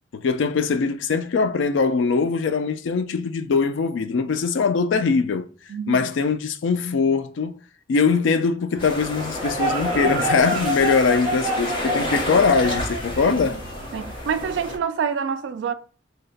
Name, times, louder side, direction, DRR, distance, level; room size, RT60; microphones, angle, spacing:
voice 1, 0.1-5.5 5.9-7.6 7.9-13.6, left 5 dB, 75° left, 0.4 m, -22 dB
voice 2, 5.7-6.1 13.2-13.6 13.9-15.7, right 6 dB, 70° right, 0.3 m, -27 dB
sound 1, 8.7-14.6, right 1 dB, 35° right, 0.9 m, -29 dB
sound 2, 8.8-14.8, left 1 dB, 25° left, 0.8 m, -30 dB
2.8 x 2.1 x 3.9 m
head